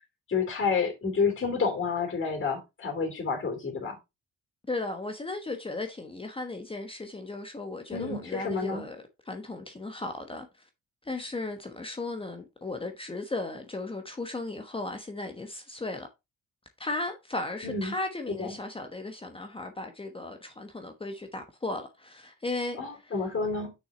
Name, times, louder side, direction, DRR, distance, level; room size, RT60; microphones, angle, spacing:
voice 1, 0.3-4.0 7.9-8.9 17.6-17.9 18.4-18.5 22.8-23.7, left 5 dB, 40° left, 3.5 m, -29 dB
voice 2, 4.7-10.5 11.0-16.1 16.8-23.1, left 2 dB, 20° left, 1.1 m, -36 dB
6.4 x 6.2 x 3.9 m
cardioid pair, 90°, 30 cm